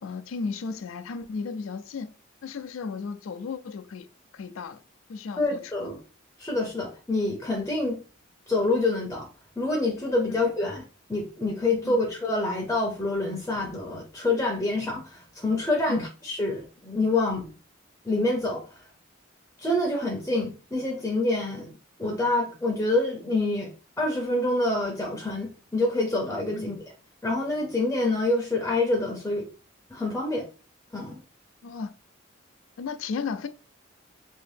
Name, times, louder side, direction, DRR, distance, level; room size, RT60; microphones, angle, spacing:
voice 1, 0.0-2.1 2.4-4.1 4.3-4.8 5.1-5.9 10.3-10.4 11.8-12.0 15.9-16.0 26.6-26.7 31.6-31.9 32.8-33.5, left 4 dB, 85° left, 0.4 m, -34 dB
voice 2, 5.4-6.0 6.4-8.0 8.5-9.3 9.6-10.8 11.1-17.5 18.0-18.9 19.6-21.7 22.0-23.7 24.0-26.8 27.2-29.5 29.9-30.5 30.9-31.2, left 2 dB, 10° left, 0.5 m, -27 dB
2.9 x 2.7 x 3.3 m
head